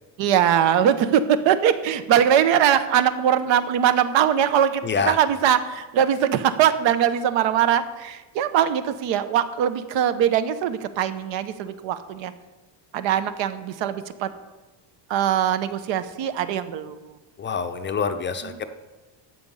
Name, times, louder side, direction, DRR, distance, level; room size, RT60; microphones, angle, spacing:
voice 1, 0.2-12.3 12.9-14.3 15.1-17.0 18.4-18.7, right 9 dB, 70° right, 11 dB, 1.1 m, -21 dB
voice 2, 4.8-5.2 17.4-18.7, left 5 dB, 25° left, 8 dB, 0.5 m, -26 dB
13.5 x 7.9 x 5.5 m, 1.1 s
cardioid pair, 155°, 46 cm